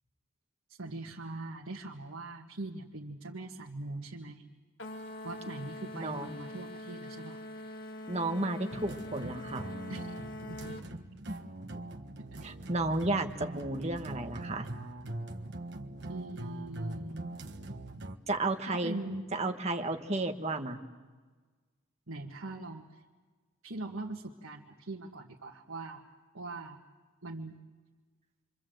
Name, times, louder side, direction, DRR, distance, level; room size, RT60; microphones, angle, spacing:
voice 1, 0.8-4.4 5.2-7.4 9.9-10.1 10.5-10.6 16.1-17.3 18.7-19.2 22.1-22.9 23.6-26.0 26.3-26.8 27.2-27.6, right 2 dB, 80° right, -2 dB, 1.7 m, -41 dB
sound 1, 4.8-10.9, left 1 dB, 60° left, 1.5 m, -43 dB
voice 2, 5.9-6.4 8.1-9.6 11.3-11.4 12.4-14.7 18.3-19.0 19.3-20.8, right 2 dB, 30° right, 5 dB, 1.4 m, -32 dB
sound 2, 8.7-18.2, right 2 dB, 55° right, 1.5 m, -42 dB
28.0 x 25.0 x 7.9 m, 1.4 s
head